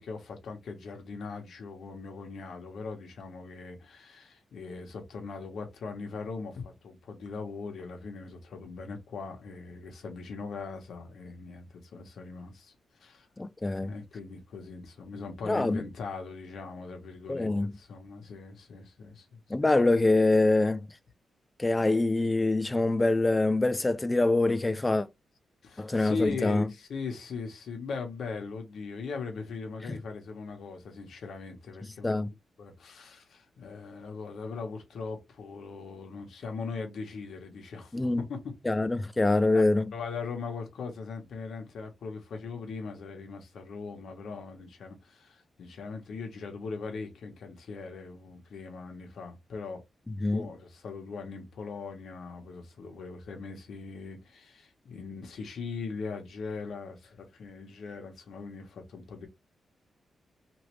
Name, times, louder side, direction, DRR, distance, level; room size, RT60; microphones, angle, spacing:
voice 1, 0.0-12.7 13.0-13.3 13.8-19.4 25.6-32.2 32.6-38.4 39.5-39.6 39.9-49.8 50.3-59.3, left 4 dB, 75° left, 1.0 m, -40 dB
voice 2, 13.4-13.9 15.5-15.8 17.3-17.7 19.5-20.8 21.6-25.1 25.8-26.7 29.9-30.0 32.0-32.3 37.9-38.2 38.7-39.8 50.1-50.5, left 2 dB, 15° left, 0.3 m, -25 dB
3.0 x 2.6 x 3.1 m
wide cardioid pair, 130°, 0 cm